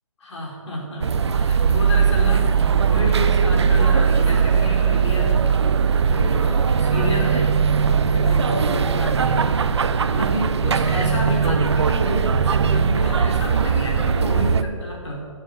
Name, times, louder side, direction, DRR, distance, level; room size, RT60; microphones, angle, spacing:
voice 1, 0.2-5.5 6.0-7.7 8.1-9.6 10.1-15.2, left 1 dB, 55° left, -1 dB, 3.6 m, -30 dB
sound 1, 1.0-14.6, right 6 dB, 50° right, 0.5 m, -19 dB
sound 2, 2.7-14.1, equal, 10° left, 2.8 m, -45 dB
9.2 x 7.3 x 9.0 m, 2.2 s
hypercardioid pair, 170°, 18 cm